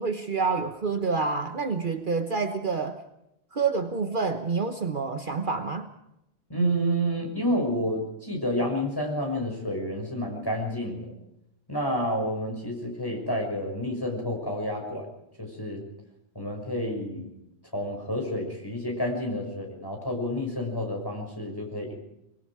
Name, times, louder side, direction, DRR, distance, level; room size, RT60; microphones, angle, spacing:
voice 1, 0.0-3.0 3.5-5.9, right 4 dB, 50° right, 7 dB, 1.3 m, -28 dB
voice 2, 6.5-11.1 11.7-15.1 15.4-15.8 16.3-17.3 17.7-21.9, equal, 20° left, 2 dB, 6.1 m, -29 dB
23.5 x 23.0 x 4.9 m, 0.83 s
omnidirectional pair, 1.1 m